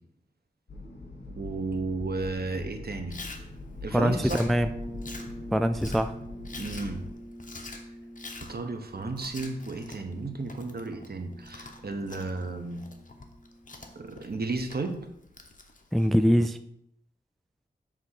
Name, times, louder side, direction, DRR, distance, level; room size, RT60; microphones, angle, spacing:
sound 1, 0.7-7.1, left 2 dB, 70° left, 2.1 m, -42 dB
voice 1, 1.4-3.2 3.8-4.4 6.6-7.0 8.5-12.8 13.9-15.0, right 3 dB, 55° right, 6 dB, 1.1 m, -33 dB
Chewing mastication, 3.1-16.1, left 3 dB, 45° left, 1.0 m, -47 dB
voice 2, 3.9-4.7 5.5-6.1 15.9-16.6, equal, ahead, 10 dB, 0.3 m, -23 dB
sound 2, 4.6-14.3, equal, 15° right, 0.8 m, -46 dB
7.6 x 3.7 x 6.5 m, 0.78 s
wide cardioid pair, 90°, 19 cm